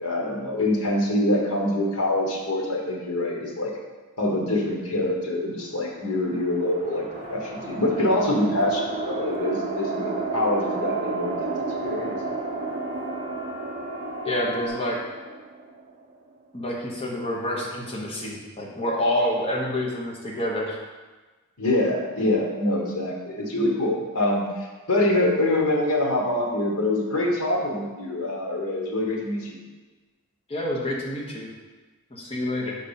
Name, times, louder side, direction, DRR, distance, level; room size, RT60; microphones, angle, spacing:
voice 1, 0.0-3.7 4.2-11.5 11.8-12.2 21.6-29.6, left 1 dB, 80° left, -1 dB, 1.3 m, -25 dB
sound 1, 5.9-16.4, right 4 dB, 30° right, 0.5 m, -33 dB
Siren, 7.1-14.7, left 1 dB, 50° left, 1.1 m, -38 dB
voice 2, 14.2-15.0 16.5-20.8 30.5-31.5 32.1-32.8, left 1 dB, 25° left, -2 dB, 1.0 m, -28 dB
4.8 x 4.0 x 5.6 m, 1.3 s
head